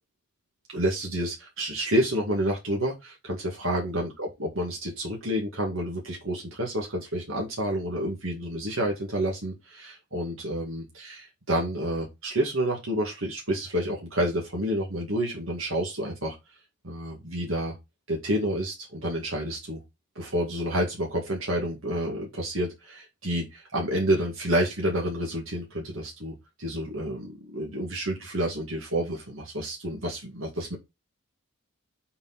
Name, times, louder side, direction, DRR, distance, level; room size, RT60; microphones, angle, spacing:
voice 1, 0.7-16.4 16.8-17.7 18.1-19.8 20.2-26.3 26.6-30.8, right 1 dB, 65° right, 2.1 m, -29 dB
6.9 x 4.6 x 4.2 m
head